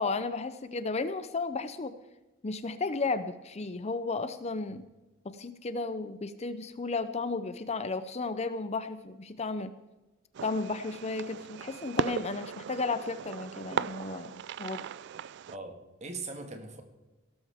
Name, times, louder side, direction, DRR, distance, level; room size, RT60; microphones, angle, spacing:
voice 1, 0.0-1.9 2.4-4.8 5.2-9.7 10.4-14.3 14.6-14.8, left 3 dB, 30° left, 12 dB, 0.6 m, -33 dB
Fireworks, 10.3-15.6, right 7 dB, 55° right, 0.3 m, -37 dB
voice 2, 15.5-16.8, right 3 dB, 35° right, 5 dB, 1.7 m, -40 dB
17.5 x 13.5 x 3.6 m, 1.1 s
head